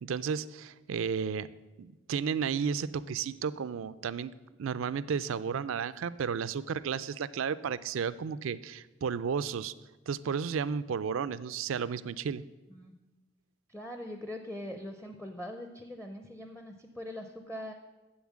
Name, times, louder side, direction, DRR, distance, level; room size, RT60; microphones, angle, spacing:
voice 1, 0.0-1.5 1.8-4.3 4.6-9.7 10.1-12.4, right 6 dB, 70° right, 16 dB, 0.4 m, -33 dB
voice 2, 13.7-17.7, left 1 dB, 5° left, 5 dB, 0.5 m, -42 dB
7.8 x 7.1 x 7.4 m, 1.1 s
head